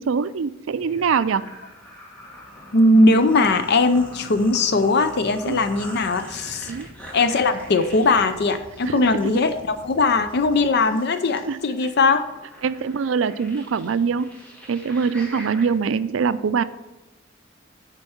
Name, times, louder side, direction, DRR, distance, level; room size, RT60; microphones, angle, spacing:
voice 1, 0.0-1.4 5.5-5.6 6.7-6.9 8.9-9.0 11.5-11.6 12.6-14.3 14.7-16.6, right 6 dB, 75° right, 14 dB, 0.4 m, -23 dB
sound 1, 0.7-15.7, equal, 5° left, 1.7 m, -43 dB
voice 2, 2.7-6.7 7.1-12.2, left 2 dB, 55° left, 10 dB, 0.5 m, -19 dB
sound 2, 5.7-10.7, equal, 30° left, 1.6 m, -48 dB
8.8 x 4.5 x 7.0 m, 1.0 s
head